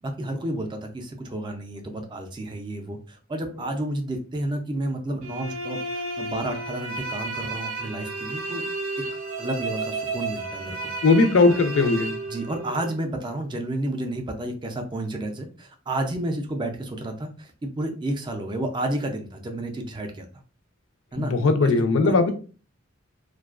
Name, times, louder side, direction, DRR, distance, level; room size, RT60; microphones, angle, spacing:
voice 1, 0.0-8.6 9.4-10.9 12.3-20.3 21.1-21.3 21.6-21.7 22.0-22.3, right 1 dB, 25° right, 0.4 m, -31 dB
sound 1, 5.2-12.9, right 2 dB, 85° right, 0.5 m, -32 dB
voice 2, 11.0-12.1 21.2-22.3, left 3 dB, 70° left, 0.4 m, -19 dB
2.4 x 2.2 x 2.3 m
head